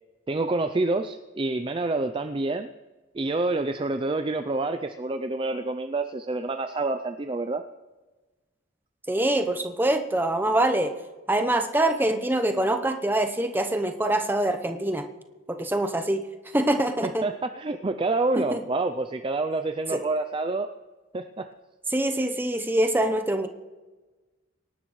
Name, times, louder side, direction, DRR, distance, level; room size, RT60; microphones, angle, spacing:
voice 1, 0.3-2.7 3.1-7.6 17.0-20.7 21.1-21.5, right 2 dB, 25° right, 7 dB, 0.4 m, -27 dB
voice 2, 9.1-10.9 11.3-15.1 15.5-16.2 16.5-17.2 18.4-18.6 19.9-20.0 21.9-23.5, right 1 dB, 10° right, 6 dB, 0.8 m, -24 dB
24.5 x 11.5 x 3.2 m, 1.2 s
head